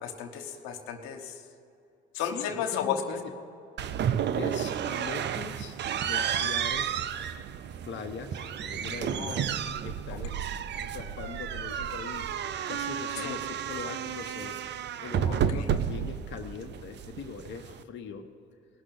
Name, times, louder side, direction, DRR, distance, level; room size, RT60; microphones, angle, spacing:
voice 1, 0.0-1.4 2.1-3.0 9.1-9.5 10.1-10.4 13.2-13.4 15.2-15.7, left 9 dB, 85° left, 4 dB, 1.1 m, -34 dB
voice 2, 2.1-3.3 4.3-7.0 7.9-9.4 9.8-10.4 10.8-18.3, left 6 dB, 60° left, 4 dB, 1.0 m, -41 dB
sound 1, 3.8-17.8, right 9 dB, 55° right, 0.6 m, -32 dB
18.5 x 6.3 x 8.5 m, 2.7 s
supercardioid pair, 65°, 21 cm